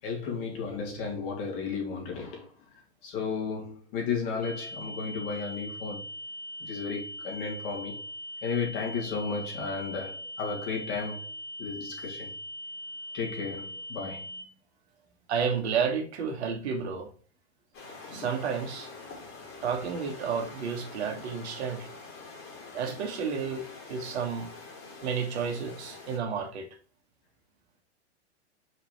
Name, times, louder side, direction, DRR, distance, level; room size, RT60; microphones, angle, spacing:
voice 1, 0.0-6.1 6.6-8.0 8.4-11.3 11.6-12.3 13.1-14.4, left 5 dB, 50° left, 3.4 m, -34 dB
sound 1, 4.4-14.4, left 1 dB, 5° left, 1.6 m, -41 dB
voice 2, 15.3-17.1 18.1-18.9 19.6-21.9 22.7-23.6 23.9-24.5 25.0-26.7, right 6 dB, 70° right, 1.7 m, -31 dB
sound 2, 17.7-26.2, left 3 dB, 35° left, 3.4 m, -45 dB
5.8 x 4.9 x 3.3 m
hypercardioid pair, 105°, 34 cm